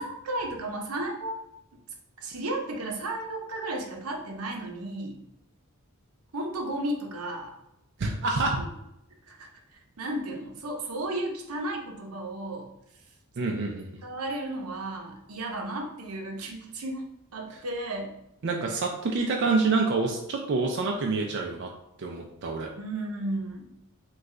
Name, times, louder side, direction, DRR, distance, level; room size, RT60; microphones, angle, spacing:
voice 1, 0.0-1.4 2.2-5.2 6.3-7.5 8.5-8.7 9.3-9.5 10.0-12.7 13.5-13.7 14.0-18.2 22.8-23.7, right 1 dB, 85° right, 2 dB, 0.7 m, -34 dB
voice 2, 8.0-8.6 13.4-14.0 17.5-17.6 18.4-21.7 22.0-22.7, right 3 dB, 55° right, 1 dB, 0.4 m, -27 dB
3.1 x 2.3 x 3.6 m, 0.83 s
head